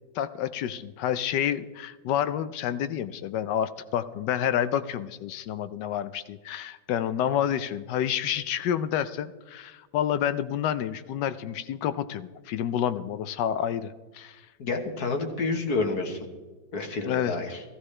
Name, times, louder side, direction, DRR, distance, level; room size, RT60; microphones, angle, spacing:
voice 1, 0.1-14.4 17.1-17.4, left 10 dB, 75° left, 13 dB, 1.1 m, -29 dB
voice 2, 14.6-16.3 16.7-17.6, left 3 dB, 55° left, 3 dB, 1.6 m, -29 dB
15.5 x 14.5 x 3.2 m, 1.2 s
omnidirectional pair, 2.1 m